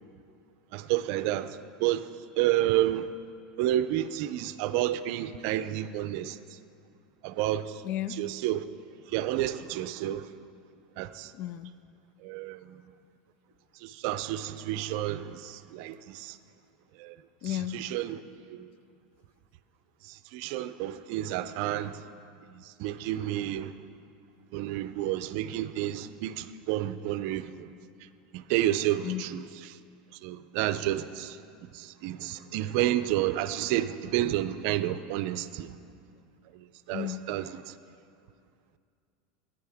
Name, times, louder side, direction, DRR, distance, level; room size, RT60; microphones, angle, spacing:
voice 1, 0.7-1.5 1.8-2.1 2.4-3.0 3.6-6.4 7.2-7.7 8.2-8.6 9.1-10.3 11.0-11.3 12.2-12.8 13.8-16.3 17.0-17.1 17.4-18.2 18.6-18.7 20.3-22.0 22.8-23.7 24.5-27.7 28.3-29.4 30.2-31.4 31.7-35.7 36.9-37.6, right 13 dB, 60° right, 0.5 m, -30 dB
voice 2, 7.8-8.2 11.4-11.7 17.4-17.8 29.0-29.3 36.9-37.2, left 13 dB, 50° left, 0.4 m, -33 dB
19.0 x 10.5 x 3.5 m
supercardioid pair, 125°, 4 cm